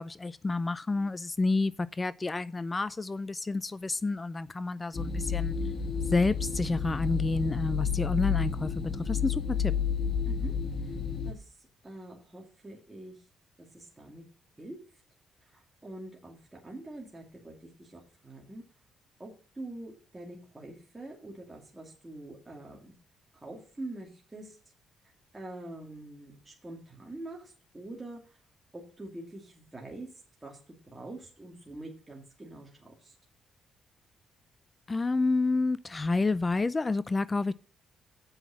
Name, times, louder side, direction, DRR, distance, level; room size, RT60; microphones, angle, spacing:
voice 1, 0.0-5.6 6.1-9.7 34.9-37.5, left 3 dB, 25° left, 0.4 m, -29 dB
sound 1, 4.9-11.3, left 6 dB, 45° left, 1.8 m, -31 dB
voice 2, 11.2-13.2 13.7-14.2 14.6-14.8 15.5-18.6 19.2-22.9 23.3-24.6 25.3-28.4 28.7-30.1 30.4-33.1, right 2 dB, 15° right, 2.5 m, -45 dB
7.8 x 5.9 x 7.1 m
cardioid pair, 90°, 0 cm